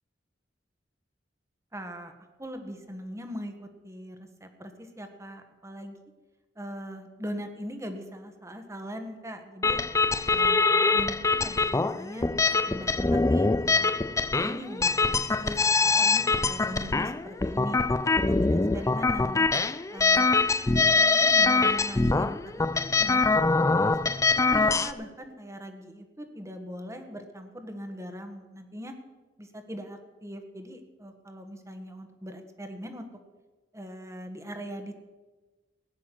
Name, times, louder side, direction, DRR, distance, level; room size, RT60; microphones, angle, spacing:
voice 1, 1.7-2.1 2.4-6.0 6.5-9.8 10.3-10.6 10.9-13.9 14.3-17.8 18.3-19.5 19.9-20.3 20.9-23.3 23.8-28.9 29.4-33.1 33.7-34.9, equal, 15° right, 6 dB, 1.6 m, -40 dB
sound 1, 9.6-24.9, left 3 dB, 20° left, 0.4 m, -24 dB
17.5 x 9.9 x 6.0 m, 1.2 s
head